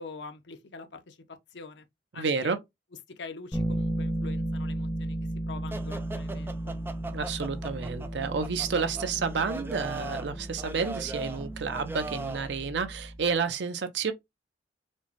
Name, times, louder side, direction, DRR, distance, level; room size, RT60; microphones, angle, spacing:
voice 1, 0.0-1.8 2.1-2.5 3.2-5.2 5.5-6.6, left 4 dB, 85° left, 0.7 m, -44 dB
voice 2, 2.1-2.6 7.1-14.1, right 5 dB, 80° right, 0.6 m, -30 dB
Bass guitar, 3.5-13.4, right 1 dB, 10° left, 1.1 m, -35 dB
sound 1, 5.7-12.5, right 2 dB, 15° right, 0.3 m, -40 dB
4.4 x 2.1 x 2.9 m
head